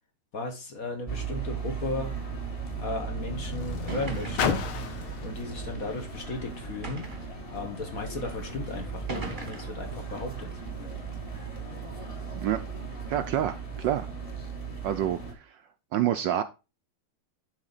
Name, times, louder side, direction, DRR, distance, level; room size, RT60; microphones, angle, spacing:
voice 1, 0.3-2.1 2.8-10.6, left 2 dB, 45° left, 1.5 m, -36 dB
Car, 0.8-7.4 8.2-8.3, left 9 dB, 80° left, 1.8 m, -37 dB
sound 1, 1.1-15.3, right 5 dB, 15° left, 1.6 m, -37 dB
sound 2, 3.3-3.4 3.9-4.7 5.6-5.7 6.8-7.4 8.2-8.3 9.1-9.8, right 3 dB, 30° right, 1.2 m, -38 dB
voice 2, 13.1-14.1 14.8-15.6 15.9-16.4, right 11 dB, 75° right, 1.1 m, -28 dB
11.0 x 4.1 x 4.0 m
omnidirectional pair, 2.4 m